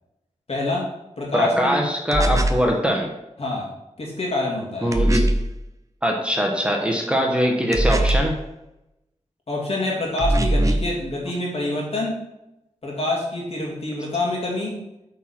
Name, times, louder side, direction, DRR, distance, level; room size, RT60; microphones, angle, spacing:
voice 1, 0.5-0.9 1.2-1.8 3.4-3.7 4.0-4.9 9.5-12.2 12.8-14.8, left 2 dB, 55° left, -2 dB, 2.7 m, -26 dB
voice 2, 1.3-3.1 4.8-5.3 6.0-8.4, equal, 10° right, 1 dB, 1.3 m, -22 dB
sound 1, 2.1-2.7 4.9-5.5 7.7-8.4 10.2-10.9, right 1 dB, 25° right, 0.7 m, -20 dB
8.2 x 4.6 x 6.0 m, 0.90 s
wide cardioid pair, 95°, 12 cm